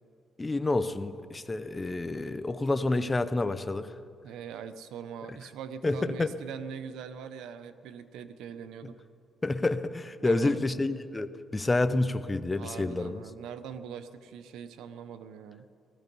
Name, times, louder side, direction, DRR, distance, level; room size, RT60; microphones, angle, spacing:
voice 1, 0.4-3.9 5.8-6.3 9.4-13.2, left 2 dB, 20° left, 11 dB, 0.7 m, -29 dB
voice 2, 4.2-9.0 10.2-10.7 12.5-15.7, right 7 dB, 85° right, 11 dB, 0.8 m, -42 dB
17.5 x 14.5 x 5.4 m, 2.5 s
cardioid pair, 90°, 0 cm